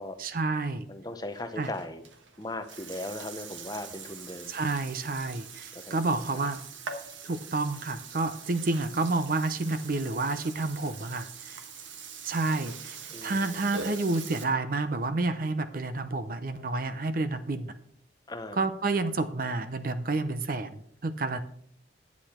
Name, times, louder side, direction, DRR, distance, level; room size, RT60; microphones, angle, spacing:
voice 1, 0.2-0.8 1.6-1.7 4.5-6.6 7.2-11.6 12.2-13.0 13.2-17.7 18.6-21.4, right 3 dB, 45° right, 11 dB, 0.6 m, -29 dB
voice 2, 0.9-2.0 2.4-4.5 5.7-6.5 13.1-13.7 18.3-18.7, left 2 dB, 20° left, 9 dB, 0.7 m, -38 dB
Burping eructation, 1.3-14.4, right 5 dB, 85° right, 1.3 m, -43 dB
9.9 x 8.4 x 4.3 m, 0.66 s
head